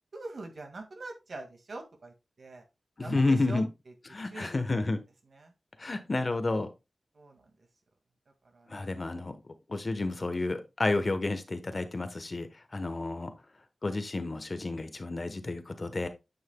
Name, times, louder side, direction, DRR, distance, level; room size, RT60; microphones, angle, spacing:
voice 1, 0.1-2.6 3.0-3.9 4.2-4.8 5.3-5.5 6.0-6.1 7.1-7.5 8.4-8.8 9.1-9.3, right 2 dB, 70° right, 4 dB, 1.9 m, -44 dB
voice 2, 3.0-3.7 4.1-5.0 5.8-6.7 8.7-9.3 9.7-13.3 13.8-16.1, left 2 dB, 45° left, 9 dB, 1.0 m, -30 dB
9.7 x 5.7 x 2.2 m, 0.25 s
wide cardioid pair, 75°, 0 cm